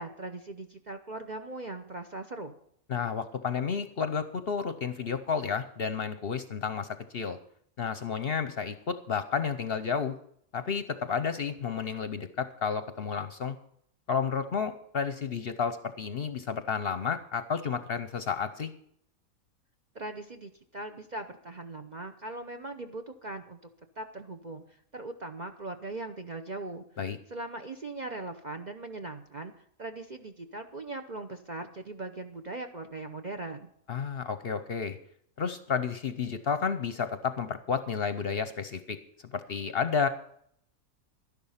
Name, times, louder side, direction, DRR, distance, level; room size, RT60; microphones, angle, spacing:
voice 1, 0.0-2.5 19.9-23.6 24.0-26.8 27.3-29.5 29.8-33.7, right 2 dB, 40° right, 6 dB, 0.7 m, -40 dB
voice 2, 2.9-7.4 7.8-10.1 10.5-13.6 14.1-18.7 27.0-27.2 33.9-35.0 35.4-39.0 39.3-40.1, left 6 dB, 50° left, 11 dB, 0.8 m, -31 dB
12.0 x 11.0 x 5.6 m, 0.68 s
omnidirectional pair, 1.5 m